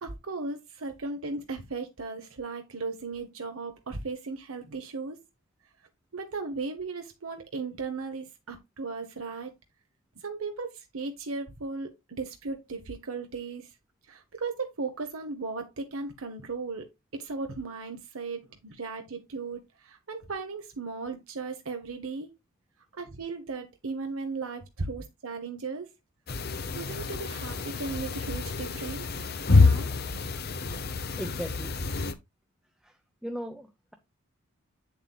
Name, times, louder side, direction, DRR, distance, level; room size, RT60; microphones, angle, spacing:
voice 1, 0.0-5.2 6.1-9.5 10.2-13.7 14.1-22.3 23.0-25.9 26.7-29.1 29.5-29.9, right 4 dB, 70° right, 1.0 m, -36 dB
sound 1, 26.3-32.1, left 3 dB, 45° left, 0.8 m, -27 dB
voice 2, 30.8-31.8 32.8-32.9 33.2-33.9, equal, ahead, 0.7 m, -38 dB
8.6 x 7.2 x 2.4 m
head